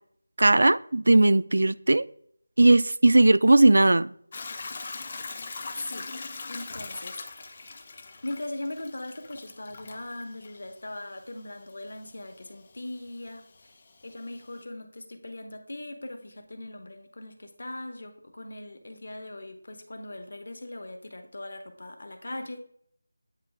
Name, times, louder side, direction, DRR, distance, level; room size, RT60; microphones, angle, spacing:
voice 1, 0.4-2.0 2.6-4.1, right 2 dB, 65° right, 0.3 m, -18 dB
Hiss / Toilet flush / Trickle dribble, 4.3-14.6, left 3 dB, 30° left, 0.5 m, -42 dB
voice 2, 5.7-6.1 6.5-7.9 8.2-13.7 14.0-22.6, left 1 dB, 60° left, 1.1 m, -40 dB
8.7 x 3.2 x 3.5 m
figure-of-eight pair, 175°, 0 cm